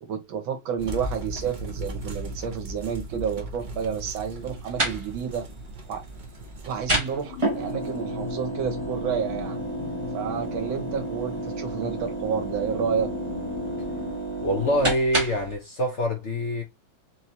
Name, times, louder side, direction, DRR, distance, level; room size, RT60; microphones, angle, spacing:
voice 1, 0.0-5.5 5.9-6.0 6.7-9.6 10.1-13.1, right 7 dB, 75° right, 1.8 m, -30 dB
sound 1, 0.8-8.4, right 1 dB, 40° right, 0.6 m, -37 dB
sound 2, 4.4-15.6, right 2 dB, 15° right, 1.2 m, -31 dB
sound 3, 6.9-14.2, left 12 dB, 80° left, 1.4 m, -38 dB
voice 2, 14.4-16.6, equal, 55° left, 0.8 m, -25 dB
4.4 x 3.3 x 2.8 m
omnidirectional pair, 2.2 m